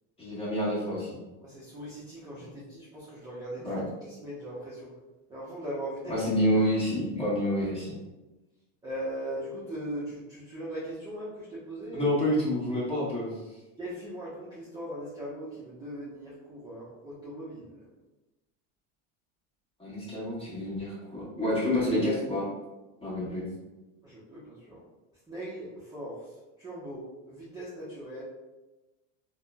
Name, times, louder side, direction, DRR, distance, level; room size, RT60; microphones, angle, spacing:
voice 1, 0.2-1.2 2.4-2.5 3.6-3.8 6.1-7.9 11.9-13.3 19.8-22.5 23.0-23.4, equal, 15° left, -8 dB, 1.2 m, -28 dB
voice 2, 1.4-4.9 5.3-6.3 8.8-12.1 13.8-17.8 24.0-24.8 25.3-26.3 26.6-28.2, right 1 dB, 10° right, -9 dB, 0.6 m, -39 dB
3.5 x 2.1 x 2.2 m, 1.1 s
supercardioid pair, 130°, 38 cm